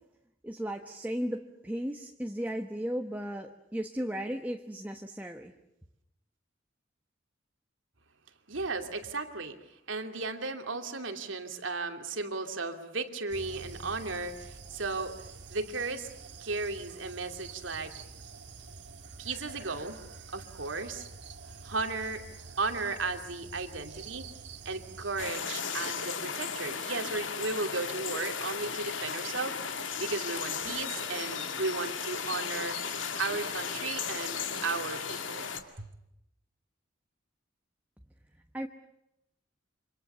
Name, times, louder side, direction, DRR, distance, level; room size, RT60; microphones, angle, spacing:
voice 1, 0.4-5.5 38.5-38.7, equal, 10° right, 4 dB, 1.2 m, -35 dB
voice 2, 8.5-9.6 9.9-16.1 16.4-17.9 19.2-20.0 20.3-21.1 21.6-22.3 22.6-24.3 24.6-29.6 30.0-32.8 33.2-35.5 35.8-35.9, right 3 dB, 85° right, 6 dB, 2.7 m, -35 dB
sound 1, 13.3-25.3, right 4 dB, 65° right, 1.9 m, -47 dB
sound 2, 25.2-35.6, left 6 dB, 75° left, 2.3 m, -35 dB
28.5 x 26.0 x 6.9 m, 0.85 s
head